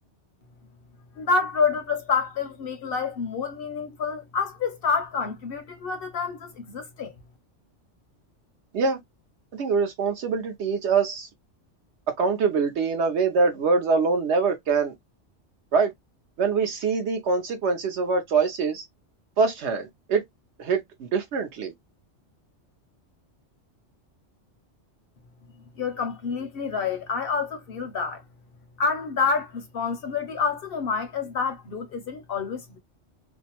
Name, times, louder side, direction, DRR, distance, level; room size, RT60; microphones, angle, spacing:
voice 1, 1.2-7.1 25.8-28.2 28.8-32.8, left 5 dB, 65° left, 0.7 m, -28 dB
voice 2, 9.5-11.3 12.2-14.9 15.7-15.9 16.4-18.8 19.4-20.2 20.6-21.7, right 4 dB, 70° right, 0.9 m, -24 dB
2.6 x 2.0 x 2.8 m
omnidirectional pair, 1.2 m